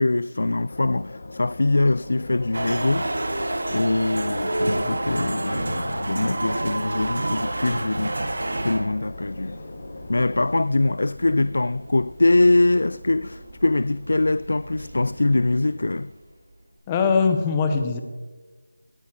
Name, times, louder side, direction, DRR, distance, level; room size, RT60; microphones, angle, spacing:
voice 1, 0.0-3.1 3.7-9.6 10.1-16.1, left 2 dB, 55° left, 0.3 m, -23 dB
sound 1, 0.7-10.5, left 2 dB, 35° left, 0.9 m, -40 dB
sound 2, 1.9-16.8, right 1 dB, 15° right, 5.4 m, -43 dB
sound 3, 2.5-8.9, right 1 dB, 65° right, 1.7 m, -28 dB
voice 2, 16.9-18.0, left 5 dB, 10° left, 0.6 m, -21 dB
18.0 x 13.0 x 4.2 m
figure-of-eight pair, 175°, 0 cm